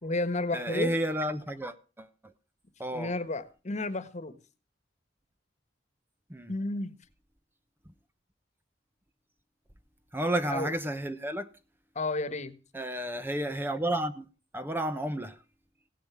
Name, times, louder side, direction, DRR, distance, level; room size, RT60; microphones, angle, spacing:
voice 1, 0.0-0.9 2.9-4.3 6.5-7.0 10.5-10.7 11.9-12.5, left 2 dB, 40° left, 1.5 m, -32 dB
voice 2, 0.5-2.1 2.8-3.1 6.3-6.5 10.1-11.5 12.7-14.3 14.5-15.4, right 1 dB, 10° right, 1.0 m, -31 dB
16.5 x 10.5 x 6.2 m
head